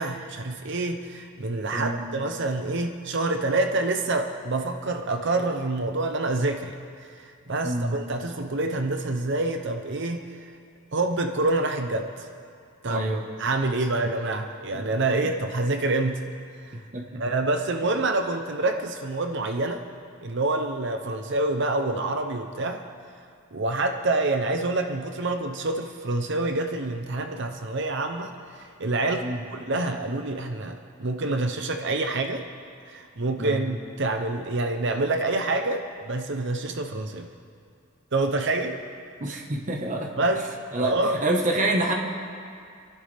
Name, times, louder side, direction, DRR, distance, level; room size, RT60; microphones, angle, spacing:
voice 1, 0.0-10.5 10.9-12.3 12.8-13.0 13.4-16.2 16.6-16.8 17.2-19.8 20.2-22.8 23.5-32.4 32.9-37.3 38.1-38.8 40.2-40.4 40.8-41.2, right 2 dB, 55° right, 5 dB, 0.7 m, -27 dB
voice 2, 7.6-8.0 12.9-13.3 14.7-14.8 15.2-15.3 16.9-17.2 29.2-29.4 33.4-33.6 39.2-40.1 40.7-41.9, right 1 dB, 35° right, 1 dB, 1.3 m, -27 dB
27.0 x 11.5 x 3.5 m, 2.3 s
head